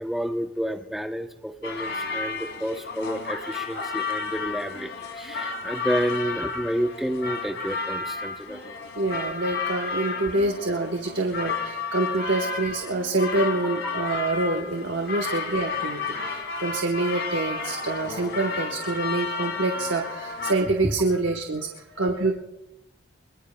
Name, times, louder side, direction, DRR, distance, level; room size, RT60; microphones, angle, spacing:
voice 1, 0.0-4.9 5.2-8.6, equal, ahead, 5 dB, 0.7 m, -30 dB
sound 1, 1.6-20.5, left 4 dB, 60° left, 2.5 m, -32 dB
voice 2, 8.9-22.3, right 2 dB, 70° right, 3 dB, 1.1 m, -26 dB
23.0 x 22.0 x 2.2 m, 0.95 s
head